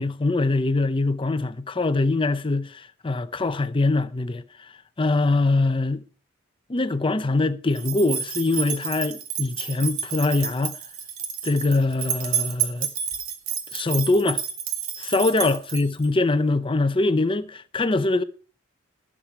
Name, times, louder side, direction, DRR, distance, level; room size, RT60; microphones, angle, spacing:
voice 1, 0.0-4.7 5.0-6.0 6.7-10.8 11.4-12.9 13.7-14.4 15.0-18.2, left 2 dB, 25° left, 0.6 m, -23 dB
sound 1, 7.8-16.1, right 8 dB, 80° right, 2.3 m, -30 dB
18.5 x 7.4 x 4.6 m
head